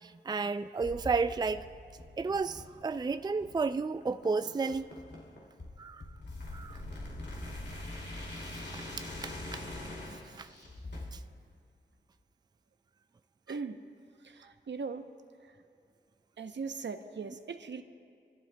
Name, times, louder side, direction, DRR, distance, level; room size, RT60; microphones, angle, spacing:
voice 1, 0.0-1.6 2.2-4.8 5.8-6.0 6.5-6.8 8.7-8.8 9.2-9.6 10.4-10.5 11.1-11.2, right 4 dB, 20° right, 10 dB, 0.4 m, -32 dB
sound 1, 0.8-11.1, left 1 dB, 65° left, 2.5 m, -43 dB
voice 2, 13.5-13.8 14.2-15.1 16.4-17.8, right 5 dB, 75° right, 8 dB, 0.8 m, -39 dB
26.0 x 14.0 x 2.3 m, 2.3 s
cardioid pair, 50°, 19 cm